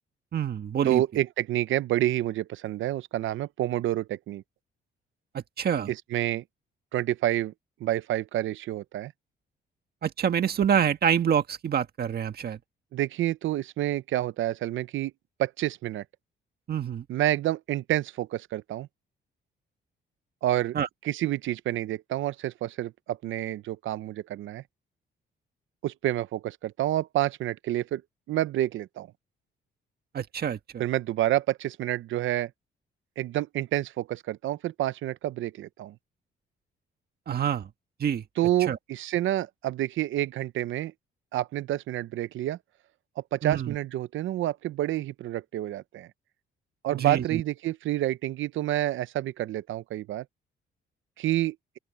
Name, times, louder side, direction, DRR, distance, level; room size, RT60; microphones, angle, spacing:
voice 1, 0.3-1.0 5.3-5.9 10.0-12.6 16.7-17.0 20.7-20.9 30.1-30.6 37.3-37.7 38.0-38.2 38.7-38.8 43.4-43.7 46.9-47.4, right 8 dB, 50° right, 1.6 m, -26 dB
voice 2, 0.8-4.4 5.9-6.4 6.9-7.5 7.8-9.1 12.9-15.1 15.4-16.0 17.1-18.9 20.4-20.8 21.0-24.6 25.8-28.0 28.3-29.1 30.8-32.5 33.2-35.9 38.4-40.9 41.3-42.6 43.2-46.1 46.8-50.2 51.2-51.6, right 14 dB, 75° right, 0.7 m, -28 dB
open air
cardioid pair, 90°, 20 cm